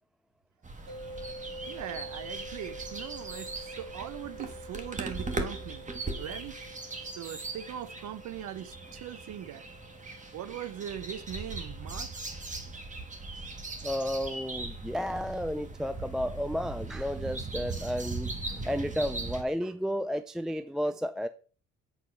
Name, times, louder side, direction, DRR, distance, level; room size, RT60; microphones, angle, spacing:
sound 1, 0.6-19.4, right 3 dB, 25° right, 1.5 m, -39 dB
sound 2, 0.9-13.9, right 1 dB, 55° right, 3.5 m, -48 dB
voice 1, 1.7-5.9 6.2-6.6 7.2-9.7 10.3-12.1, right 10 dB, 75° right, 0.8 m, -40 dB
voice 2, 13.8-21.3, equal, ahead, 0.4 m, -32 dB
8.4 x 4.2 x 5.5 m
cardioid pair, 90°, 30 cm